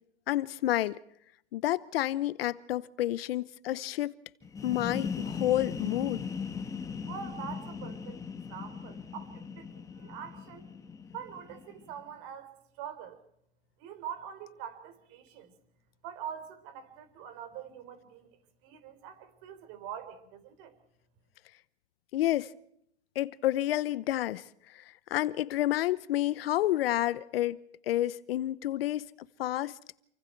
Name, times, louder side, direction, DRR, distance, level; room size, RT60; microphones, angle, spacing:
voice 1, 0.3-1.0 1.5-4.1 4.6-6.2 22.1-22.5 23.1-24.8 25.1-27.6 27.9-29.1 29.4-29.8, left 14 dB, 60° left, 0.9 m, -29 dB
sound 1, 4.4-12.0, left 5 dB, 10° left, 1.7 m, -39 dB
voice 2, 7.1-8.2 8.5-10.7 11.1-13.2 13.8-15.5 16.0-18.3 18.6-20.7, right 8 dB, 40° right, 4.1 m, -44 dB
28.0 x 24.5 x 4.7 m
hypercardioid pair, 145°, 33 cm